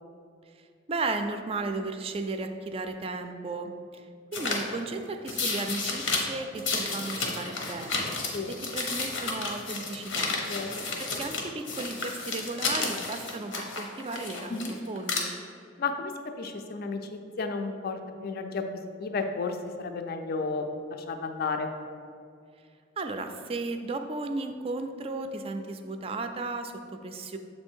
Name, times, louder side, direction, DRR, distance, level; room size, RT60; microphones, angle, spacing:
voice 1, 0.9-3.7 4.3-8.2 8.5-10.3 11.0-15.3 23.0-27.4, right 3 dB, 30° right, 7 dB, 0.3 m, -35 dB
sound 1, 4.3-4.6 5.3-6.2 6.6-11.4 11.7-14.7 15.0-15.2, left 3 dB, 90° left, 0.9 m, -31 dB
voice 2, 10.5-10.8 14.5-14.7 15.8-16.1 16.4-18.6 19.0-20.6 21.1-21.7, left 4 dB, 55° left, 6 dB, 0.4 m, -32 dB
7.0 x 3.2 x 4.4 m, 2.3 s
head